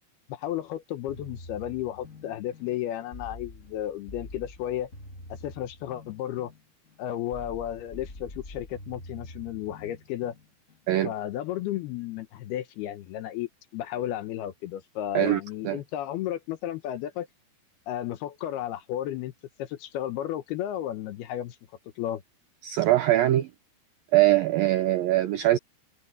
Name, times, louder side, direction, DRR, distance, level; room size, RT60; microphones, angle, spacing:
voice 1, 0.3-4.9 5.3-6.5 7.0-10.3 11.0-17.3 17.9-19.3 19.6-21.6 22.0-22.2, left 12 dB, 75° left, 2.6 m, -33 dB
sound 1, 1.1-10.9, left 1 dB, 25° left, 1.6 m, -46 dB
voice 2, 15.1-15.8 22.6-23.5 24.1-25.6, right 15 dB, 90° right, 2.0 m, -22 dB
omnidirectional pair, 5.2 m